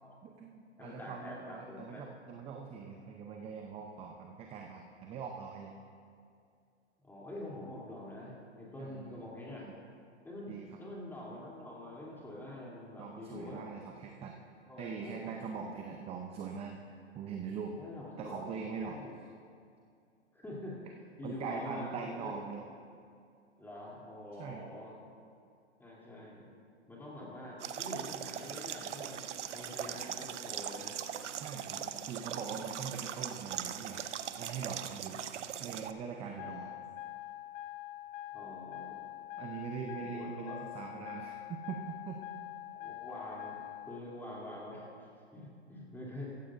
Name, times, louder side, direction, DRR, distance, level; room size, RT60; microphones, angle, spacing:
voice 1, 0.2-5.7 8.8-9.2 9.6-9.7 10.5-10.8 13.0-14.4 14.8-16.8 17.1-17.8 18.2-19.2 21.2-22.6 24.4-24.6 31.4-34.1 34.4-35.2 35.6-36.7 39.4-41.4 41.7-42.2, right 6 dB, 15° right, 3 dB, 0.6 m, -42 dB
voice 2, 0.8-2.0 7.0-9.7 10.2-10.5 10.8-13.6 14.7-15.3 17.8-18.5 18.9-19.1 20.3-20.8 21.2-22.3 23.6-25.0 25.8-26.6 26.9-29.3 29.5-31.0 31.6-32.0 36.3-36.5 38.3-39.0 40.0-40.6 42.7-43.6 43.9-44.9 45.3-46.3, left 1 dB, 5° left, -5 dB, 3.0 m, -45 dB
sound 1, 27.6-35.9, right 9 dB, 80° right, 0.7 m, -40 dB
sound 2, 36.4-44.0, left 14 dB, 30° left, 0.6 m, -45 dB
15.0 x 14.5 x 2.6 m, 2.4 s
hypercardioid pair, 125°, 35 cm